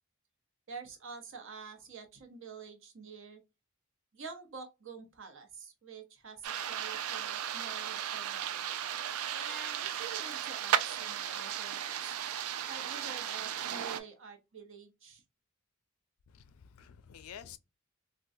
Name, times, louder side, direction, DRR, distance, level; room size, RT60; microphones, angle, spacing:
voice 1, 0.7-3.4 4.1-8.7 9.3-12.2 12.7-15.2, right 5 dB, 65° right, 0.8 m, -48 dB
sound 1, 6.4-14.0, right 9 dB, 90° right, 0.4 m, -35 dB
voice 2, 16.3-17.6, left 8 dB, 85° left, 0.4 m, -50 dB
3.5 x 2.2 x 2.6 m
head